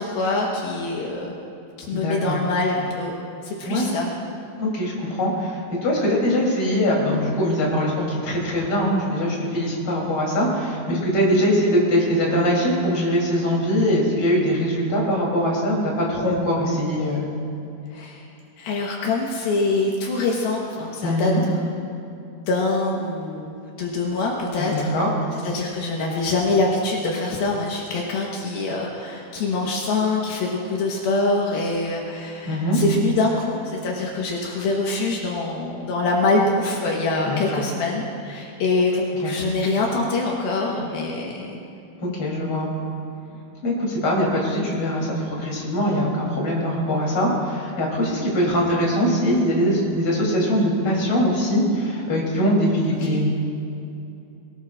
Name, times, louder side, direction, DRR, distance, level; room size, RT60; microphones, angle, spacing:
voice 1, 0.0-1.3 1.8-3.2 3.4-4.1 17.9-18.2 18.6-21.8 22.5-24.9 25.4-41.6 43.3-43.4 53.0-53.2, left 3 dB, 80° left, -2 dB, 3.1 m, -24 dB
voice 2, 1.9-2.4 3.6-3.9 4.6-17.3 21.0-21.4 24.6-25.1 32.4-32.8 37.3-37.6 39.2-39.4 42.0-42.7 43.6-53.3, equal, 35° left, -4 dB, 4.1 m, -22 dB
22.0 x 19.5 x 2.5 m, 2.7 s
omnidirectional pair, 4.3 m